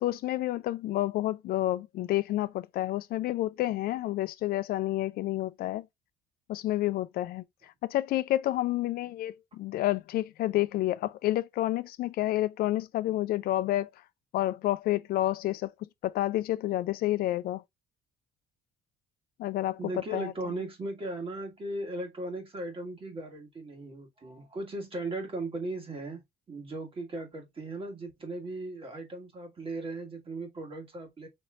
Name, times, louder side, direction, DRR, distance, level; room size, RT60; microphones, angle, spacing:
voice 1, 0.0-5.8 6.5-13.9 14.3-17.6 19.4-19.8 20.1-20.3, left 15 dB, 65° left, 0.4 m, -29 dB
voice 2, 19.8-26.2 26.5-31.3, right 2 dB, 30° right, 1.8 m, -37 dB
4.2 x 3.1 x 2.4 m
cardioid pair, 110°, 17 cm